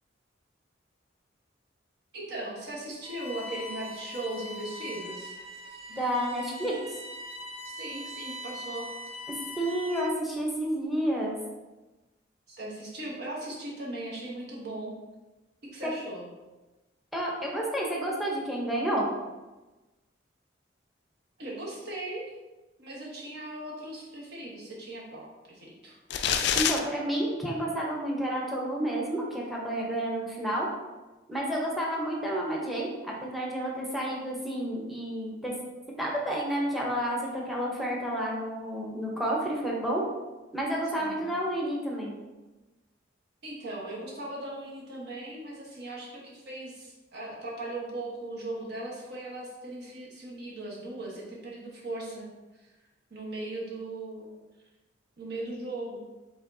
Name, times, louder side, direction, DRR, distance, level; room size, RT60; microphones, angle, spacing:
voice 1, 2.1-5.4 7.8-8.9 12.5-14.9 15.6-16.3 21.4-22.3 22.8-26.0 40.8-41.2 43.4-52.3 52.5-52.7 53.1-54.3 55.2-56.0, right 2 dB, 60° right, -4 dB, 1.2 m, -38 dB
Bowed string instrument, 3.0-10.3, left 1 dB, 35° right, 0.6 m, -41 dB
voice 2, 5.9-6.7 9.6-11.4 15.8-15.9 17.1-19.1 26.5-30.7 31.3-35.5 35.9-40.0 40.5-42.1, right 1 dB, ahead, -3 dB, 0.8 m, -30 dB
sound 1, 26.1-26.8, left 8 dB, 65° left, 0.3 m, -25 dB
5.0 x 3.6 x 2.7 m, 1.1 s
head